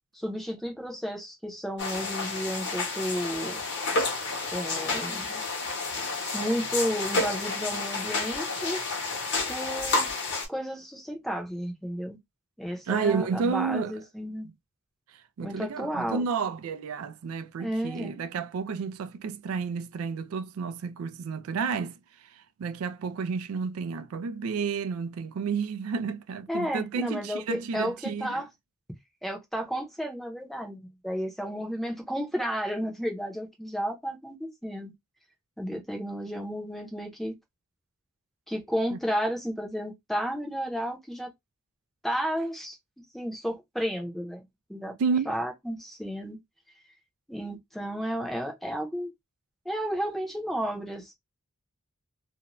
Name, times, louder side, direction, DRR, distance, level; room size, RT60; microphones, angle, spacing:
voice 1, 0.1-3.6 4.5-5.4 6.3-8.8 9.5-10.1 10.5-12.2 12.6-14.5 15.4-16.3 17.6-18.1 26.5-28.5 29.2-34.9 35.6-37.3 38.5-41.3 42.0-42.8 43.1-44.4 44.7-44.9 45.3-46.4 47.3-49.1 49.7-51.1, equal, ahead, 0.6 m, -32 dB
sound 1, 1.8-10.5, left 3 dB, 55° left, 0.9 m, -30 dB
voice 2, 12.9-14.0 15.1-28.4 38.9-39.0 45.0-45.3, right 5 dB, 80° right, 0.4 m, -31 dB
2.5 x 2.1 x 2.9 m
head